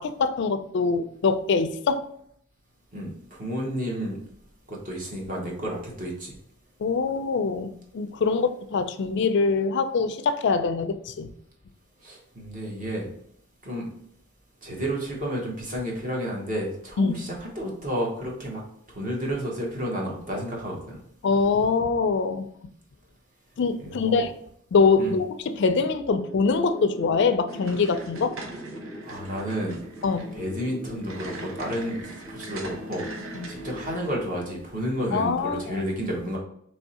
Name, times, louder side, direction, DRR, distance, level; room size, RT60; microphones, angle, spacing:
voice 1, 0.0-2.0 6.8-11.3 17.0-17.2 21.2-22.5 23.6-24.3 24.7-28.4 30.0-30.3 33.3-33.5 35.1-35.8, left 4 dB, 60° left, 9 dB, 0.4 m, -24 dB
voice 2, 2.9-4.2 4.7-6.3 12.0-13.1 13.6-13.9 14.6-18.6 18.9-21.0 23.8-24.2 25.0-25.1 29.0-29.8 30.3-33.1 33.5-36.4, equal, 40° right, -2 dB, 1.2 m, -31 dB
sound 1, 26.1-35.1, equal, 10° right, 0.6 m, -41 dB
sound 2, 27.5-34.1, right 3 dB, 75° right, 0.8 m, -42 dB
3.5 x 3.2 x 4.2 m, 0.68 s
head